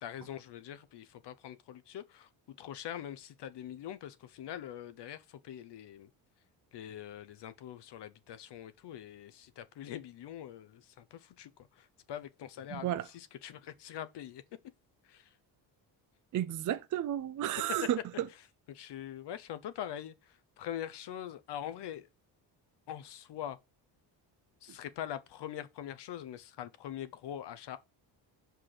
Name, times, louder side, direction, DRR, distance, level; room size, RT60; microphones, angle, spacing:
voice 1, 0.0-6.1 6.7-14.4 15.0-15.4 18.3-18.4 18.7-22.1 22.9-23.6 24.6-27.8, left 10 dB, 65° left, 0.9 m, -43 dB
voice 2, 12.7-13.0 16.3-18.0, right 11 dB, 45° right, 0.5 m, -32 dB
5.8 x 4.7 x 4.9 m
cardioid pair, 90°, 45 cm